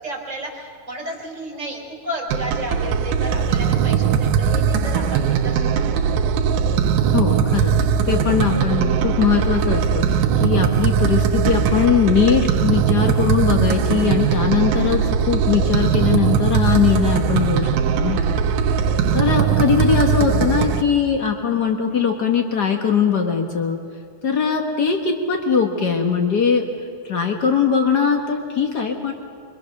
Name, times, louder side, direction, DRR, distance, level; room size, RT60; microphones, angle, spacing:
voice 1, 0.0-6.3 19.0-19.2, right 1 dB, 20° right, -1 dB, 4.5 m, -32 dB
sound 1, 2.3-20.8, right 7 dB, 80° right, 2.7 m, -19 dB
voice 2, 7.1-7.7 8.1-18.2 19.1-23.8 24.2-26.6 27.0-29.1, left 6 dB, 85° left, 2 dB, 0.9 m, -20 dB
27.0 x 24.0 x 6.5 m, 2.1 s
omnidirectional pair, 4.4 m